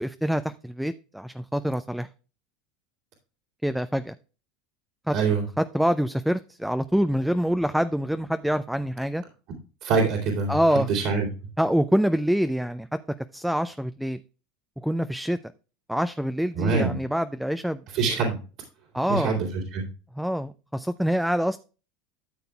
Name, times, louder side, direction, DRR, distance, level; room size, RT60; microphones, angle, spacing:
voice 1, 0.0-2.1 3.6-4.1 5.1-5.2 5.6-9.2 10.5-10.9 11.6-13.0 13.3-14.2 14.8-15.4 15.9-17.8 18.9-19.4 20.2-21.6, equal, ahead, 11 dB, 0.4 m, -25 dB
voice 2, 5.1-5.4 9.8-10.5 10.9-11.3 16.5-17.0 17.9-18.4 19.1-19.8, right 4 dB, 65° right, -6 dB, 2.7 m, -24 dB
13.0 x 6.8 x 2.3 m, 0.35 s
hypercardioid pair, 90°, 0 cm